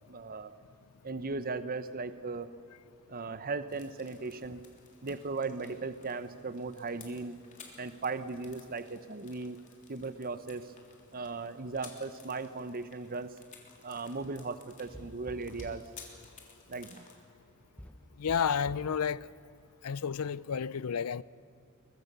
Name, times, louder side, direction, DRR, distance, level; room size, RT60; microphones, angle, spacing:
voice 1, 0.1-0.6 1.0-2.5 3.1-4.6 5.0-7.4 7.8-9.6 9.9-10.7 11.1-13.3 13.8-15.8 16.7-17.1, right 3 dB, 40° right, 0.9 m, -37 dB
sound 1, 3.7-17.1, left 5 dB, 35° left, 3.5 m, -56 dB
sound 2, 14.9-15.9 17.8-19.0, equal, 5° left, 0.7 m, -48 dB
voice 2, 18.2-19.3 19.8-21.2, left 7 dB, 85° left, 0.5 m, -31 dB
23.0 x 22.5 x 6.8 m
head